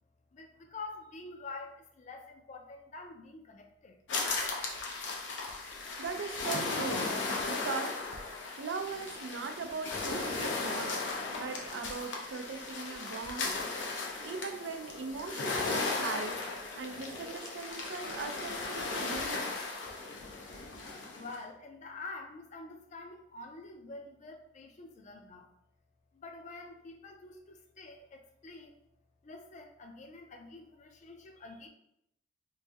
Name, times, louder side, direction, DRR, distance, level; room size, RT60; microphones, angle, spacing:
voice 1, 0.3-4.0 21.1-25.5 26.1-28.8 29.2-31.7, left 3 dB, 40° left, 4 dB, 0.4 m, -47 dB
sound 1, 4.1-21.4, left 3 dB, 90° left, 0.7 m, -36 dB
voice 2, 6.0-7.1 7.5-8.0 8.6-11.1 11.4-13.6 14.2-19.6, right 5 dB, 80° right, 6 dB, 0.4 m, -39 dB
3.1 x 2.6 x 3.3 m, 0.78 s
head